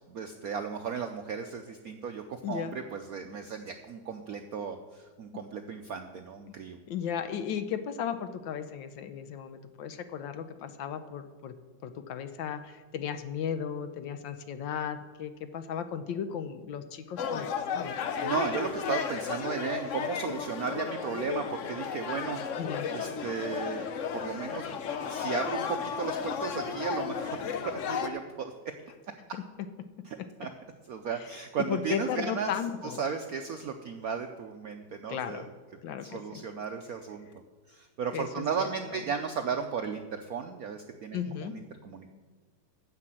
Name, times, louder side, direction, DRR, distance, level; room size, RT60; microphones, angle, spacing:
voice 1, 0.1-6.8 18.2-22.4 22.9-23.9 24.1-24.7 25.1-28.5 30.0-30.5 30.9-32.5 32.8-35.5 36.0-37.3 37.7-42.1, right 6 dB, 75° right, 5 dB, 0.8 m, -35 dB
voice 2, 2.4-2.8 6.9-11.5 11.8-18.0 22.6-22.9 31.2-31.3 31.6-33.0 35.1-35.5 35.8-36.4 38.1-38.7 41.1-41.6, left 8 dB, 70° left, 10 dB, 1.3 m, -35 dB
sound 1, 17.2-28.1, left 7 dB, 90° left, 0.6 m, -34 dB
9.8 x 7.6 x 7.6 m, 1.4 s
omnidirectional pair, 2.3 m